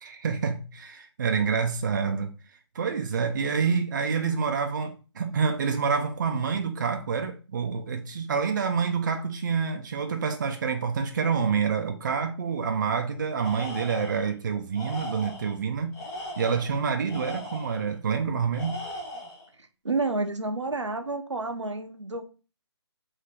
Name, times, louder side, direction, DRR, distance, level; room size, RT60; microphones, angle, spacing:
voice 1, 0.0-2.3 2.7-16.0 16.4-18.8, right 6 dB, 40° right, 0.4 m, -27 dB
Tools, 13.4-14.3 14.7-15.5 15.9-17.8 18.5-19.5, left 1 dB, 15° left, 0.5 m, -38 dB
voice 2, 19.8-22.2, right 3 dB, 85° right, 0.7 m, -29 dB
2.9 x 2.7 x 3.4 m
figure-of-eight pair, 145°, 15 cm